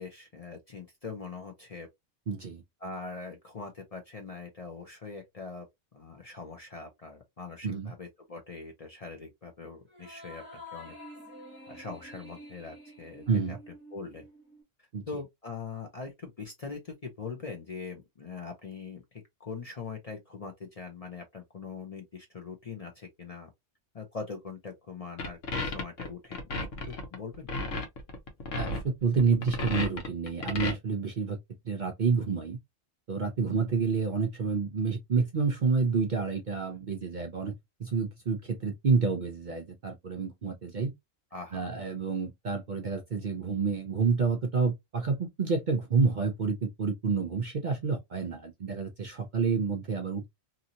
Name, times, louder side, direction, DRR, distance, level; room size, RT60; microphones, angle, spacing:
voice 1, 0.0-1.9 2.8-5.7 5.9-10.9 11.7-13.6 13.9-14.2 14.8-19.0 19.4-23.5 23.9-27.5 41.3-41.7, left 4 dB, 40° left, 0.6 m, -42 dB
voice 2, 2.3-2.6 7.6-7.9 13.3-13.6 14.9-15.0 28.6-31.4 31.6-32.6 33.1-37.5 37.8-40.9 41.5-50.3, right 5 dB, 55° right, 0.6 m, -29 dB
sound 1, 9.9-14.6, left 1 dB, 10° right, 1.1 m, -48 dB
sound 2, 25.2-30.7, left 2 dB, 80° left, 1.2 m, -33 dB
2.8 x 2.7 x 2.7 m
omnidirectional pair, 1.3 m